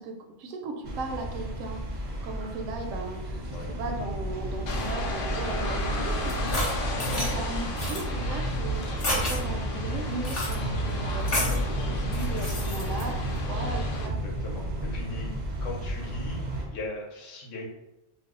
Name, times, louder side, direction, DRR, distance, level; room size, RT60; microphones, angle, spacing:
voice 1, 0.0-3.4 3.7-6.7 7.0-14.2, right 3 dB, 85° right, 2 dB, 1.0 m, -37 dB
sound 1, 0.8-16.6, right 1 dB, 50° right, 0.6 m, -32 dB
sound 2, 4.7-14.1, left 2 dB, 60° left, 0.6 m, -35 dB
sound 3, 6.3-7.3 7.8-8.0 9.0-9.4 10.2-10.5 11.3-11.6 12.1-13.0, left 1 dB, 45° left, 1.0 m, -30 dB
voice 2, 7.0-7.4 14.0-14.7 14.9-17.7, left 2 dB, 80° left, -1 dB, 1.1 m, -39 dB
2.6 x 2.1 x 3.6 m, 0.94 s
omnidirectional pair, 1.3 m